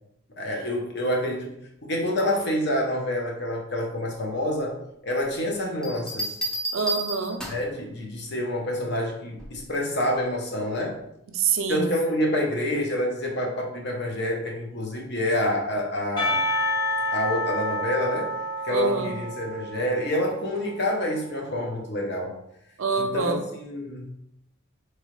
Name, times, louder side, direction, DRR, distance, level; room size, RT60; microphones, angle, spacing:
voice 1, 0.4-6.3 7.5-11.0 11.7-16.4 17.1-18.3 18.6-22.3 23.0-24.1, left 1 dB, 50° left, 0 dB, 0.8 m, -27 dB
sound 1, 5.8-7.8 9.4-9.7, right 1 dB, 5° left, 0.4 m, -31 dB
voice 2, 6.7-7.4 11.3-11.9 18.7-19.1 22.8-23.4, right 5 dB, 65° right, 5 dB, 0.5 m, -26 dB
Percussion, 16.2-21.0, left 1 dB, 20° left, 1.1 m, -29 dB
3.6 x 3.1 x 3.1 m, 0.78 s
head